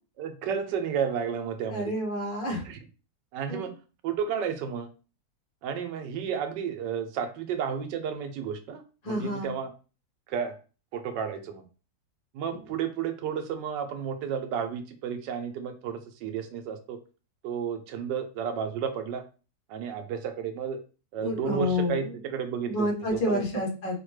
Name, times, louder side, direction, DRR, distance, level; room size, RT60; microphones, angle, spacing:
voice 1, 0.2-1.9 2.6-2.8 3.3-3.7 4.0-4.9 5.6-9.7 10.3-10.6 10.9-11.6 12.3-17.0 17.4-19.2 19.7-20.8 21.1-23.6, right 7 dB, 80° right, 7 dB, 1.3 m, -32 dB
voice 2, 1.7-2.6 3.5-3.7 9.0-9.5 21.2-22.0 22.6-24.0, left 1 dB, 80° left, -1 dB, 2.0 m, -29 dB
5.0 x 2.1 x 3.1 m, 0.35 s
omnidirectional pair, 1.9 m